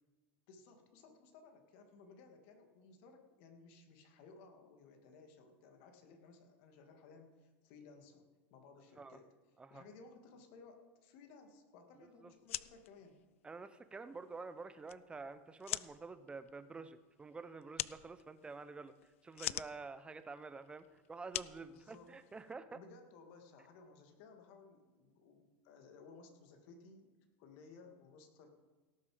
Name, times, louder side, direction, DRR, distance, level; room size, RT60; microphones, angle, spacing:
voice 1, 0.5-9.3 9.7-13.2 21.7-22.1 22.7-27.1 27.4-28.5, left 4 dB, 65° left, 4 dB, 2.2 m, -59 dB
voice 2, 12.0-12.3 13.4-18.9 19.2-22.8, right 4 dB, 15° right, 12 dB, 0.8 m, -49 dB
sound 1, 12.3-22.5, left 14 dB, 90° left, 0.4 m, -46 dB
17.5 x 7.1 x 5.1 m, 1.2 s
supercardioid pair, 120°, 7 cm